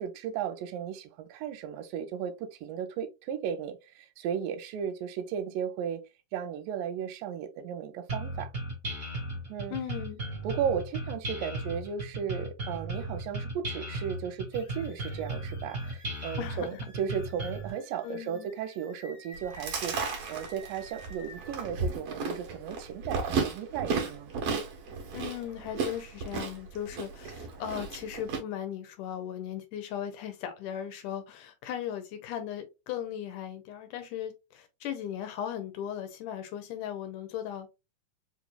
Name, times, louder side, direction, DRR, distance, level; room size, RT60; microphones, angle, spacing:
voice 1, 0.0-6.0 6.3-8.5 9.5-9.8 10.4-24.3, right 8 dB, 85° right, 2.3 m, -35 dB
sound 1, 8.1-17.7, right 2 dB, 35° right, 1.3 m, -36 dB
voice 2, 9.7-10.2 16.4-16.9 18.0-18.5 25.1-37.7, left 10 dB, 80° left, 2.1 m, -37 dB
sound 2, 14.5-21.6, left 1 dB, 50° left, 1.0 m, -52 dB
Chewing mastication, 19.3-28.4, right 4 dB, 60° right, 1.8 m, -34 dB
5.1 x 3.1 x 2.3 m
omnidirectional pair, 3.9 m